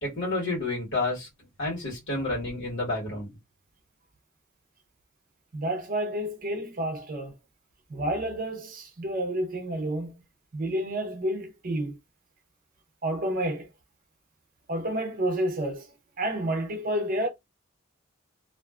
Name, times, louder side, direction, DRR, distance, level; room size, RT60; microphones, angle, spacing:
voice 1, 0.0-1.3 1.6-3.3, left 2 dB, 60° left, 1.4 m, -30 dB
voice 2, 5.5-7.3 7.9-10.1 10.5-12.0 13.0-13.7 14.7-15.9 16.2-17.3, right 1 dB, 45° right, 0.6 m, -30 dB
2.5 x 2.2 x 2.3 m
head